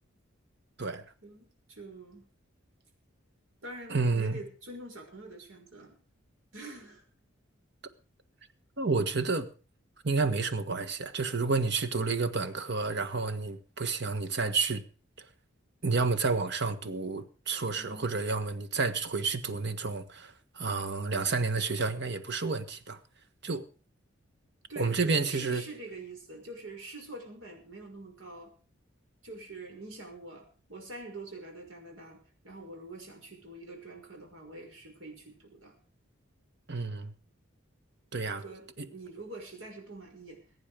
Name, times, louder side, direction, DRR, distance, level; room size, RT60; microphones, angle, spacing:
voice 1, 1.2-2.3 3.6-6.0 6.5-7.0 17.7-18.1 24.7-28.5 29.2-35.7 38.3-40.5, right 2 dB, 75° right, 5.9 m, -45 dB
voice 2, 3.9-4.4 8.8-9.5 10.0-14.8 15.2-15.3 15.8-23.0 23.4-23.7 24.7-25.6 36.7-37.1 38.1-38.4 38.8-38.9, right 4 dB, 60° right, 1.6 m, -30 dB
21.5 x 9.7 x 5.1 m
head